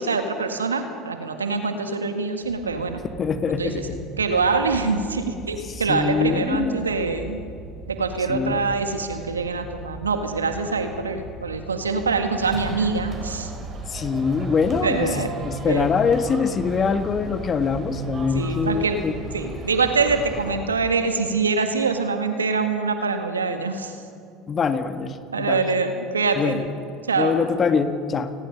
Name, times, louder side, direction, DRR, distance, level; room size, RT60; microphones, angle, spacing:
voice 1, 0.0-3.0 3.6-3.9 4.2-7.4 7.9-13.5 14.8-15.3 15.7-15.9 18.3-19.0 19.3-24.0 25.3-26.6 27.1-27.4, right 4 dB, 85° right, 7 dB, 1.8 m, -24 dB
sound 1, 2.4-20.6, equal, 85° left, 6.8 m, -40 dB
voice 2, 3.2-4.0 5.7-6.9 8.3-8.6 13.9-19.1 24.5-25.6 26.4-26.6 27.2-28.3, left 5 dB, 35° left, 9 dB, 1.9 m, -24 dB
sound 2, 12.4-20.5, right 4 dB, 35° right, 5.4 m, -37 dB
29.5 x 20.5 x 5.4 m, 2.4 s
hypercardioid pair, 70°, 0 cm